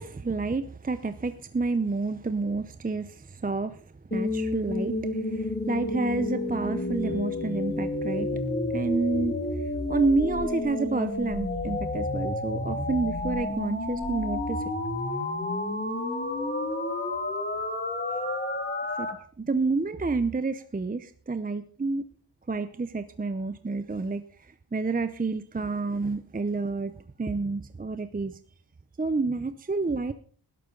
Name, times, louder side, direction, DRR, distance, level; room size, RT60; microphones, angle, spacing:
voice 1, 0.0-3.8 4.1-8.3 8.7-14.6 18.1-18.3 19.0-19.1 19.4-22.0 22.5-28.4 29.0-30.1, right 3 dB, 20° right, 11 dB, 0.7 m, -29 dB
sound 1, 4.1-19.1, left 2 dB, 25° left, 2.3 m, -30 dB
19.5 x 12.0 x 3.9 m, 0.43 s
wide cardioid pair, 130°, 43 cm